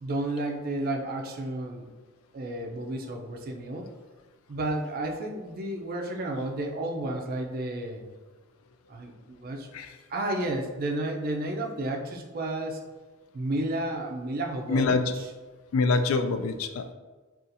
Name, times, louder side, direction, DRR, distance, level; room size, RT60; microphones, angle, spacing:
voice 1, 0.0-1.9 2.3-3.9 4.5-8.0 8.9-9.7 10.1-12.8 13.3-15.3, right 1 dB, 45° right, 2 dB, 0.4 m, -32 dB
voice 2, 14.7-15.1 15.7-16.9, left 4 dB, 70° left, 9 dB, 0.3 m, -25 dB
4.0 x 2.4 x 2.6 m, 1.3 s
head